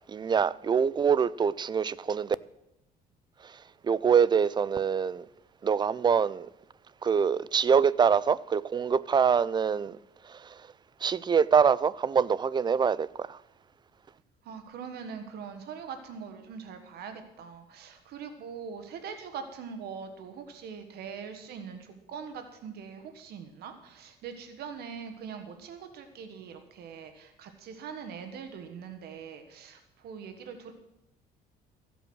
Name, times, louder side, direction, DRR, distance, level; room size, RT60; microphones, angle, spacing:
voice 1, 0.1-2.4 3.4-5.2 5.6-6.5 7.0-10.0 10.2-10.6 11.0-13.4, right 6 dB, 25° right, 0.4 m, -25 dB
voice 2, 14.4-30.7, right 6 dB, 70° right, 1.5 m, -42 dB
15.0 x 8.0 x 6.2 m
cardioid pair, 110°, 17 cm